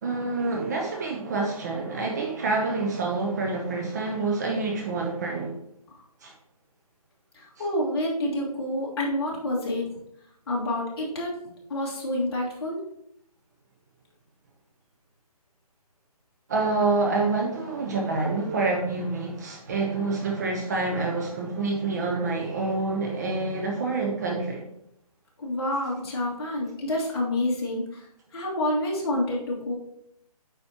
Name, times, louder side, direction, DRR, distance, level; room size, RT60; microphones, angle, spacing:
voice 1, 0.0-5.6 6.2-6.3 16.5-24.7, right 3 dB, 25° right, 0 dB, 0.8 m, -27 dB
voice 2, 7.3-9.9 10.5-12.8 25.4-28.1 28.3-29.7, left 1 dB, 40° left, -3 dB, 2.2 m, -28 dB
8.7 x 5.2 x 2.9 m, 0.74 s
hypercardioid pair, 165°, 20 cm